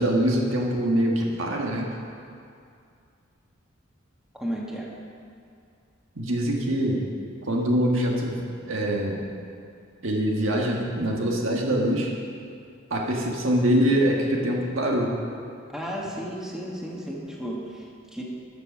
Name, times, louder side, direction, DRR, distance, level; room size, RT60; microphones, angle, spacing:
voice 1, 0.0-1.9 6.1-7.0 7.5-9.2 10.0-12.1 12.9-15.1, equal, 70° right, -1 dB, 1.6 m, -24 dB
voice 2, 4.3-4.9 15.7-18.2, equal, 5° right, -3 dB, 1.4 m, -33 dB
13.0 x 6.8 x 6.3 m, 2.4 s
head